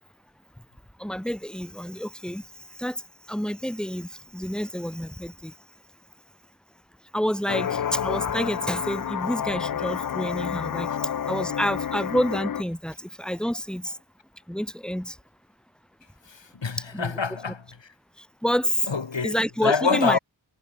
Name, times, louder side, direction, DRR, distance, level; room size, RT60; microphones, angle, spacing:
voice 1, 1.0-5.5 7.1-14.0 14.5-15.2 16.9-17.1 18.2-18.9 19.2-20.2, equal, ahead, 3.5 m, -29 dB
sound 1, 7.5-12.6, left 8 dB, 50° left, 0.5 m, -29 dB
voice 2, 16.3-17.6 18.9-19.4 19.6-20.2, left 5 dB, 70° left, 1.9 m, -25 dB
wide cardioid pair, 40°, 46 cm